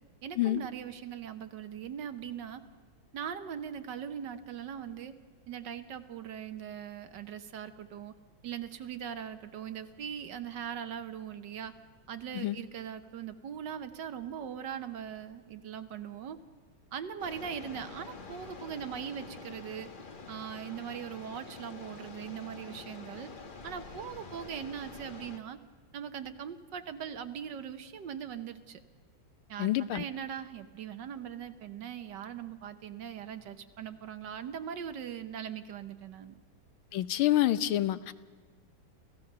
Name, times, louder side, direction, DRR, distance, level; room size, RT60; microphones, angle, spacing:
voice 1, 0.2-2.6 3.1-5.1 5.5-8.1 8.4-11.7 12.1-16.4 16.9-19.9 20.3-23.3 23.6-25.6 25.9-28.8 29.5-36.4, right 8 dB, 65° right, 10 dB, 1.5 m, -40 dB
sound 1, 17.2-25.4, left 4 dB, 30° left, 1.1 m, -47 dB
voice 2, 29.6-30.0 36.9-38.1, left 14 dB, 90° left, 15 dB, 1.6 m, -27 dB
28.5 x 16.0 x 6.7 m, 1.6 s
omnidirectional pair, 2.2 m